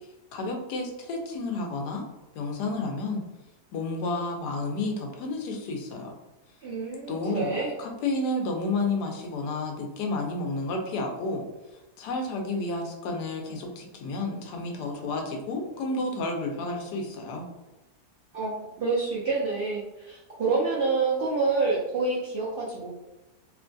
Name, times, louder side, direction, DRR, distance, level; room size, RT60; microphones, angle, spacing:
voice 1, 0.3-2.0 2.3-3.2 3.7-6.1 7.1-7.5 7.8-11.4 12.0-17.5, left 2 dB, 80° left, 2 dB, 1.2 m, -31 dB
voice 2, 6.6-7.7 18.3-22.9, right 3 dB, 70° right, -7 dB, 0.5 m, -27 dB
3.0 x 2.5 x 2.2 m, 1.0 s
omnidirectional pair, 1.7 m